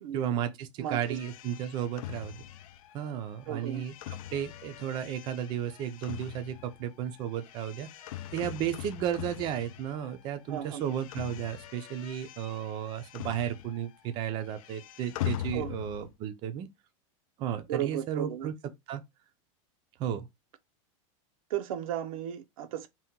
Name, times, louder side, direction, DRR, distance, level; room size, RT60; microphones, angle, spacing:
voice 1, 0.1-2.4 2.9-3.9 4.3-7.9 8.3-16.7 17.4-18.5 18.9-19.0 20.0-20.3, right 9 dB, 25° right, 0.4 m, -33 dB
voice 2, 0.8-1.2 3.5-3.8 10.5-10.8 15.5-15.7 17.7-18.5 21.5-22.9, right 11 dB, 85° right, 0.5 m, -35 dB
sound 1, 1.0-10.3 10.5-14.0 14.2-16.1, left 12 dB, 85° left, 0.4 m, -42 dB
2.8 x 2.2 x 3.5 m
supercardioid pair, 165°, 17 cm